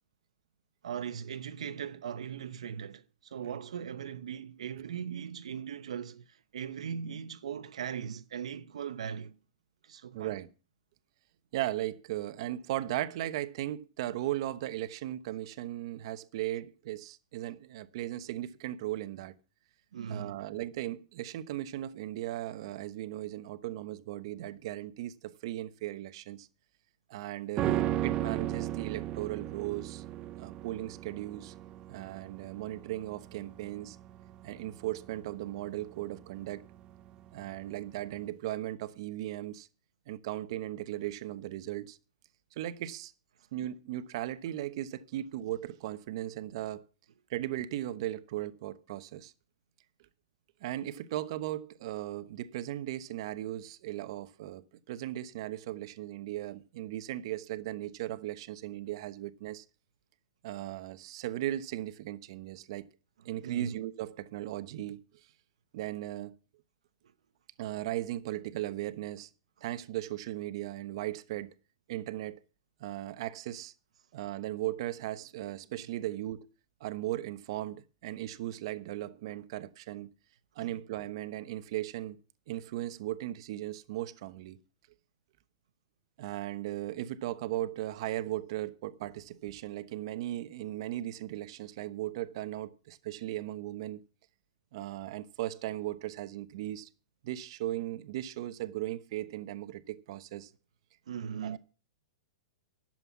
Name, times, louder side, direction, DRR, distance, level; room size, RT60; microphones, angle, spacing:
voice 1, 0.8-9.4 9.8-10.4 19.9-20.4 63.4-63.7 80.6-80.8 101.1-101.6, right 8 dB, 85° right, 0.8 m, -39 dB
voice 2, 10.1-10.5 11.5-19.3 20.1-26.5 27.1-30.0 30.4-31.5 31.9-34.0 34.4-36.7 37.3-39.7 40.1-42.0 42.5-43.1 43.5-46.8 47.3-49.3 50.6-59.6 60.4-62.8 63.2-65.0 65.7-66.4 67.6-69.3 69.6-71.5 71.9-72.4 72.8-73.7 74.1-76.4 76.8-80.1 80.5-82.2 82.5-84.6 86.2-94.0 94.7-96.9 97.2-100.5 101.4-101.6, right 14 dB, 55° right, 1.0 m, -37 dB
sound 1, 27.6-37.0 37.3-37.4, right 13 dB, 30° right, 0.7 m, -36 dB
11.5 x 7.7 x 7.3 m
hypercardioid pair, 145°, 3 cm